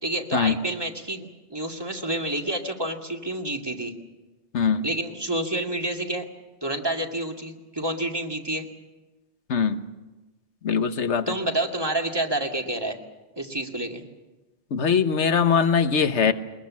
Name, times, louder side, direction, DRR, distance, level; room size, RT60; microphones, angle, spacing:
voice 1, 0.0-3.9 4.8-6.3 6.6-8.6 11.3-13.0 13.4-14.0, right 1 dB, 20° right, 2 dB, 2.1 m, -29 dB
voice 2, 4.5-4.8 9.5-9.8 10.6-11.3 14.7-16.3, left 6 dB, 85° left, 9 dB, 1.4 m, -21 dB
22.5 x 21.0 x 7.5 m, 1.1 s
omnidirectional pair, 1.2 m